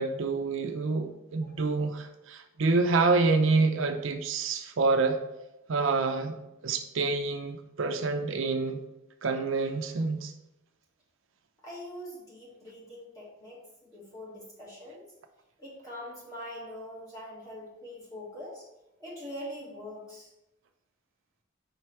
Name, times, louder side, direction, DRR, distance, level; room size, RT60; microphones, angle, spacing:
voice 1, 0.0-5.2 5.7-8.8 9.2-10.3, right 3 dB, 70° right, 6 dB, 0.5 m, -27 dB
voice 2, 11.6-15.0 15.6-18.6 19.0-20.3, equal, 15° left, -6 dB, 1.8 m, -43 dB
5.1 x 4.6 x 4.4 m, 0.95 s
head